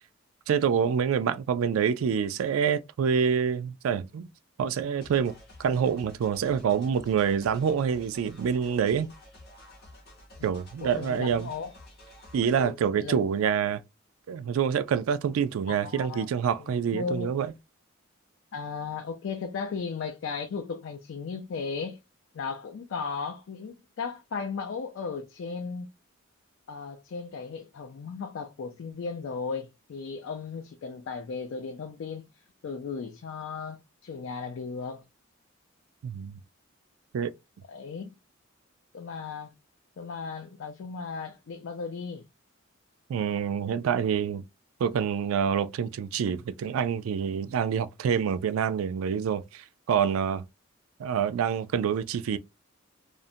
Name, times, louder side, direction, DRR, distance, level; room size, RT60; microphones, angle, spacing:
voice 1, 0.5-4.3 4.6-9.1 10.4-11.5 12.3-13.8 14.3-17.5 36.0-36.3 37.1-37.3 43.1-44.4 44.8-50.4 51.0-52.4, right 7 dB, 85° right, 0.3 m, -27 dB
sound 1, 5.0-12.7, left 1 dB, 50° left, 0.8 m, -51 dB
voice 2, 10.8-11.7 12.6-13.2 15.7-16.3 16.6-17.3 18.5-22.0 22.3-25.9 26.7-35.0 37.7-38.1 38.9-39.5 40.0-42.3, left 5 dB, 65° left, 0.3 m, -36 dB
2.5 x 2.1 x 2.6 m
head